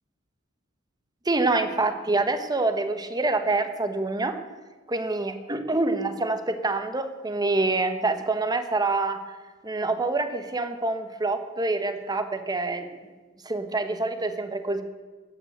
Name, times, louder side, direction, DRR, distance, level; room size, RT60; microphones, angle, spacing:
voice 1, 1.2-4.4 4.9-9.2 9.6-12.9 13.4-14.8, right 3 dB, 20° right, 8 dB, 1.1 m, -26 dB
14.0 x 9.3 x 8.0 m, 1.3 s
head